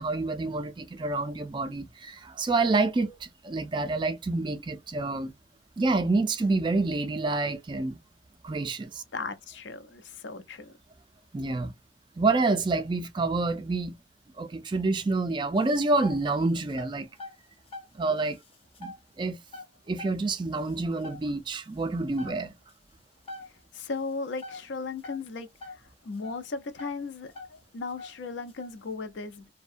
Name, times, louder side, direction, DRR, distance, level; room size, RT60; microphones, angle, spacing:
voice 1, 0.0-5.3 5.8-8.0 8.4-9.0 11.3-11.7 12.2-14.0 14.4-17.1 18.0-18.4 18.8-18.9 19.2-19.4 19.9-22.5, right 3 dB, 25° right, 0.3 m, -28 dB
voice 2, 9.1-10.7 23.7-29.5, left 4 dB, 80° left, 0.5 m, -37 dB
sound 1, 15.6-16.3 16.7-18.0 18.3-19.0 19.5-20.4 20.8-20.9 21.0-21.3 21.9-22.0 22.2-22.4 22.7-22.8 23.3-23.6 24.4-25.3 25.5-27.0 27.3-27.6 28.0-28.8, left 2 dB, 30° left, 0.6 m, -42 dB
2.6 x 2.1 x 2.4 m
head